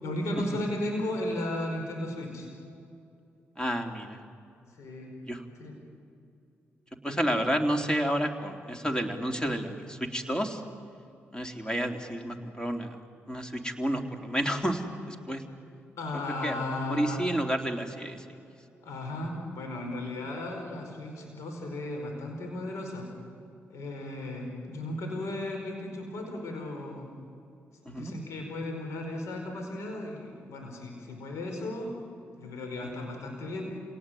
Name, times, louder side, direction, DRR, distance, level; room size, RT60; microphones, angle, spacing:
voice 1, 0.0-2.5 4.8-5.1 5.6-5.8 7.1-7.2 16.0-17.2 18.8-23.1 23.7-27.1 27.9-32.0 32.4-33.6, left 1 dB, 75° left, 3 dB, 4.8 m, -35 dB
voice 2, 3.6-4.2 5.3-5.4 7.0-10.6 11.3-13.0 13.3-14.8 15.1-15.4 16.4-16.6 16.9-18.2 27.8-28.1 32.8-32.9, equal, 15° left, 5 dB, 3.3 m, -30 dB
27.5 x 18.0 x 9.3 m, 2.6 s
supercardioid pair, 55°, 5 cm